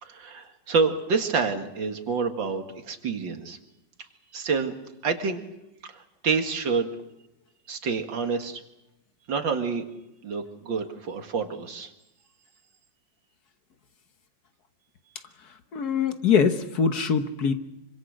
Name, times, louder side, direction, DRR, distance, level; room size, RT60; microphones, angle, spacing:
voice 1, 0.0-3.6 4.3-4.7 5.0-5.4 5.9-6.9 7.7-8.6 9.3-9.8 10.2-11.9, right 5 dB, 90° right, 6 dB, 2.6 m, -28 dB
voice 2, 15.7-17.5, left 6 dB, 60° left, 8 dB, 1.7 m, -23 dB
26.0 x 25.0 x 6.4 m, 0.93 s
omnidirectional pair, 2.0 m